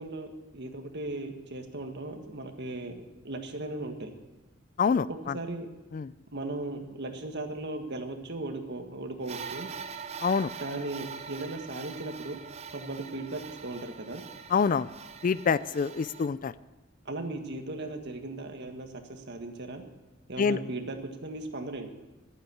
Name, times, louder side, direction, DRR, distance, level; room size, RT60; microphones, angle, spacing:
voice 1, 0.0-4.1 5.3-5.7 6.3-9.7 10.6-12.4 12.7-14.2 17.0-19.8 20.3-21.9, right 2 dB, 55° right, 5 dB, 1.7 m, -37 dB
voice 2, 4.8-5.4 5.9-6.1 10.2-10.5 14.5-14.9 15.2-16.5 20.4-20.6, left 5 dB, 40° left, 17 dB, 0.4 m, -26 dB
sound 1, 9.2-16.3, right 6 dB, 30° right, 0.6 m, -43 dB
12.5 x 9.2 x 8.5 m, 1.1 s
head